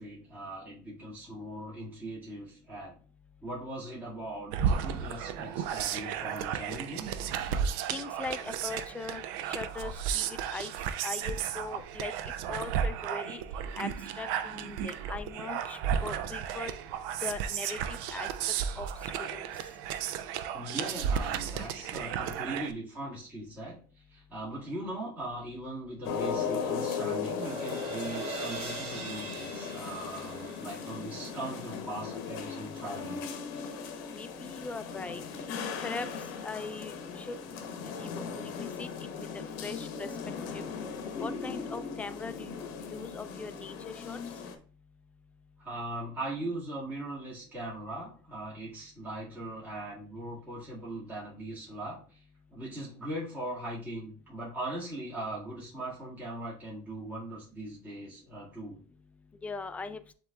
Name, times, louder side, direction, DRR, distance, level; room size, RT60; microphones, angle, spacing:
voice 1, 0.0-2.9 3.4-7.1 20.5-33.2 45.6-52.2 52.5-58.8, right 1 dB, 15° right, -8 dB, 1.8 m, -40 dB
sound 1, 4.5-22.7, right 8 dB, 70° right, 0.4 m, -33 dB
voice 2, 7.9-9.2 9.5-10.7 11.0-12.1 12.5-13.4 13.7-13.9 14.1-16.7 17.2-18.3 18.8-18.9 19.2-19.5 34.1-35.2 35.8-36.1 36.4-37.4 38.0-38.9 39.3-40.1 40.5-40.6 41.2-44.2 59.4-60.0, left 4 dB, 10° left, 11 dB, 0.4 m, -40 dB
sound 2, 25.8-32.2, right 2 dB, 50° right, 1.5 m, -41 dB
sound 3, 26.0-44.6, left 6 dB, 75° left, 0.8 m, -38 dB
7.7 x 2.9 x 2.3 m, 0.42 s
supercardioid pair, 125°, 12 cm